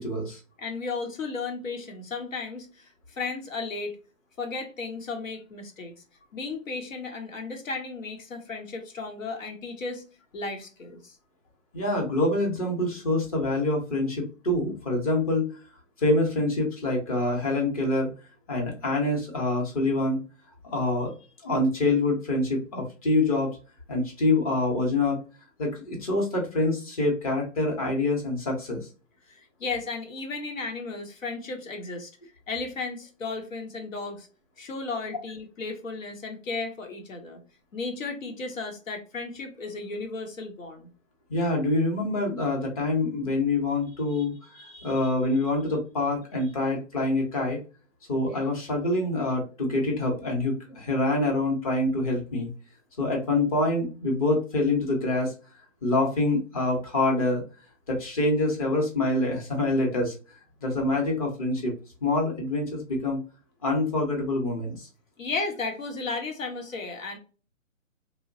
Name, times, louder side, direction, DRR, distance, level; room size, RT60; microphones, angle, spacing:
voice 1, 0.0-0.4 11.7-15.5 16.0-18.1 18.5-20.2 20.6-21.1 21.4-23.5 23.9-25.2 25.6-28.8 41.3-44.3 44.8-47.6 48.1-52.5 53.0-55.3 55.8-57.4 57.9-60.1 60.6-61.7 62.0-63.2 63.6-64.9, left 2 dB, 25° left, 0.8 m, -26 dB
voice 2, 0.6-4.0 4.4-5.9 6.3-10.0 10.3-11.1 29.3-32.1 32.5-34.3 34.6-37.4 37.7-40.9 44.1-44.3 44.5-45.1 65.2-67.2, left 3 dB, 70° left, 1.0 m, -34 dB
3.0 x 2.1 x 2.5 m
hypercardioid pair, 155°, 41 cm